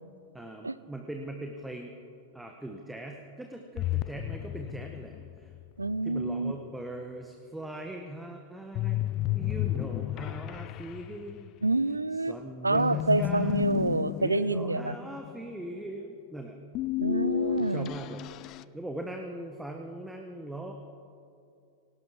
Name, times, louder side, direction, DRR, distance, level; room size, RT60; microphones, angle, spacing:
voice 1, 0.3-1.9 2.3-5.5 6.0-11.5 12.3-13.7 14.2-16.6 17.6-18.2 18.5-20.7, right 1 dB, 5° right, 3 dB, 1.0 m, -40 dB
sound 1, 3.8-6.0 8.7-11.8 12.7-15.7 16.7-18.6, left 17 dB, 35° left, 0.3 m, -33 dB
voice 2, 5.8-6.5 11.6-12.4 12.6-14.9 17.0-17.9, right 2 dB, 80° right, 17 dB, 0.4 m, -27 dB
19.0 x 17.5 x 3.6 m, 2.4 s
figure-of-eight pair, 90°, 0 cm